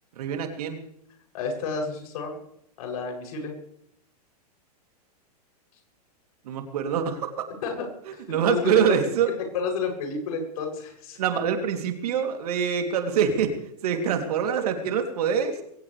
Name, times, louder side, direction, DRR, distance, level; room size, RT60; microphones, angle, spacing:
voice 1, 0.1-0.8 6.4-7.5 8.1-9.3 11.2-13.5 13.8-15.6, right 7 dB, 70° right, 5 dB, 3.2 m, -25 dB
voice 2, 1.3-2.4 2.8-3.5 7.6-8.6 9.5-11.2, left 4 dB, 65° left, 2 dB, 7.9 m, -31 dB
22.5 x 17.5 x 3.5 m, 0.75 s
hypercardioid pair, 115°, 20 cm